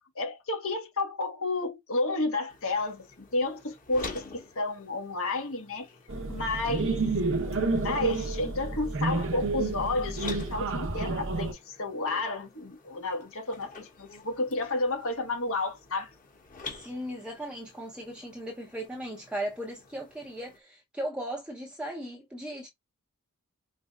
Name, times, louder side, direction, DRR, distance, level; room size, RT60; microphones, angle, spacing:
voice 1, 0.1-5.9 6.3-7.0 7.8-16.1, left 2 dB, 65° left, 1.4 m, -31 dB
sound 1, 2.5-20.6, left 3 dB, 40° left, 1.6 m, -48 dB
sound 2, 6.1-11.5, right 3 dB, 60° right, 0.9 m, -30 dB
voice 2, 16.7-22.7, right 1 dB, 5° right, 0.8 m, -37 dB
5.1 x 3.3 x 2.3 m
head